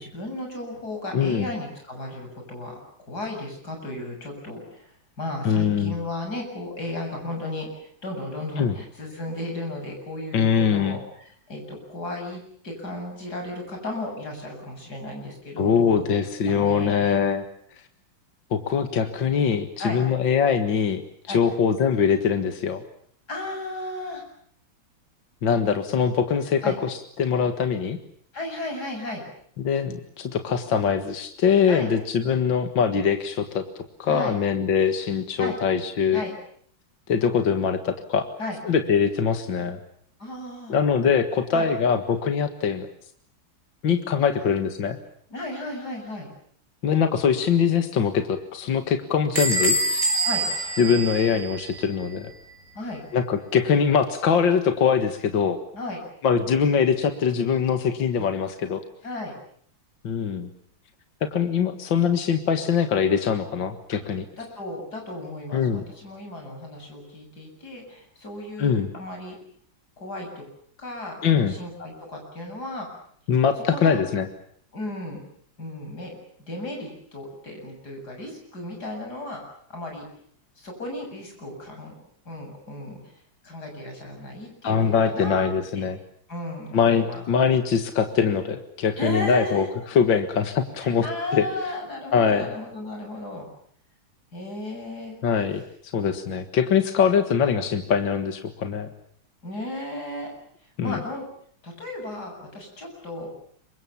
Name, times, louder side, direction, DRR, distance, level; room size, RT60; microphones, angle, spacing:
voice 1, 0.0-17.2 19.8-20.0 21.3-21.4 23.3-24.2 26.6-26.8 28.3-29.2 31.7-31.9 34.1-34.4 35.4-35.6 36.1-36.3 38.4-38.6 40.2-40.8 41.5-41.7 44.2-44.5 45.3-46.3 50.2-50.4 52.7-53.0 55.7-56.0 58.2-58.3 59.0-59.3 63.9-64.0 64.4-69.4 70.0-70.4 70.8-72.9 73.7-74.0 74.7-75.2 75.6-79.4 79.7-80.1 80.6-81.9 82.2-83.0 83.4-85.5 85.8-85.9 86.3-87.2 89.0-89.7 90.8-93.5 94.3-95.2 99.4-100.3 100.8-101.3 101.6-103.3, left 1 dB, 50° left, 2 dB, 8.3 m, -34 dB
voice 2, 1.1-1.5 5.4-6.0 8.6-8.7 10.3-11.0 15.6-17.5 18.5-21.0 21.3-22.8 25.4-28.0 29.6-33.7 34.0-36.2 37.1-38.3 38.7-39.8 40.7-42.9 43.8-45.0 46.8-50.0 50.8-52.3 53.1-55.6 56.2-58.8 60.0-60.5 61.2-64.2 65.5-65.9 68.6-68.9 71.2-71.5 73.3-74.3 84.6-86.0 86.7-91.1 91.3-91.5 92.1-92.5 95.2-95.6 95.9-98.9 100.8-101.0, left 7 dB, 70° left, 7 dB, 2.4 m, -22 dB
Bell / Squeak, 49.4-51.9, right 2 dB, 35° right, 7.2 m, -25 dB
28.5 x 24.5 x 7.1 m, 0.64 s
omnidirectional pair, 2.2 m